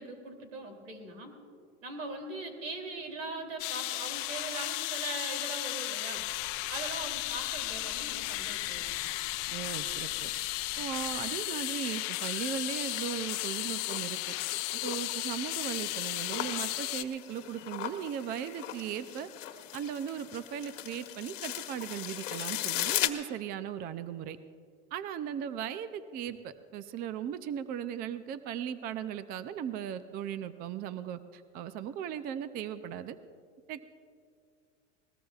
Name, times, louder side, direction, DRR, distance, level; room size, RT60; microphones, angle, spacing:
voice 1, 0.0-1.3 1.8-6.2 6.7-9.1, right 2 dB, 85° right, 3 dB, 2.9 m, -41 dB
sound 1, 3.6-17.0, left 19 dB, 45° left, 0.6 m, -35 dB
sound 2, 6.1-11.2, right 2 dB, 50° right, 3.5 m, -54 dB
voice 2, 9.5-10.3 10.8-14.3 14.8-19.3 19.7-24.4 24.9-33.2 33.7-33.8, right 9 dB, 25° right, 13 dB, 0.4 m, -37 dB
sound 3, 12.1-23.1, left 14 dB, 80° left, 1.2 m, -39 dB
20.5 x 19.5 x 2.4 m, 2.2 s
supercardioid pair, 125°, 37 cm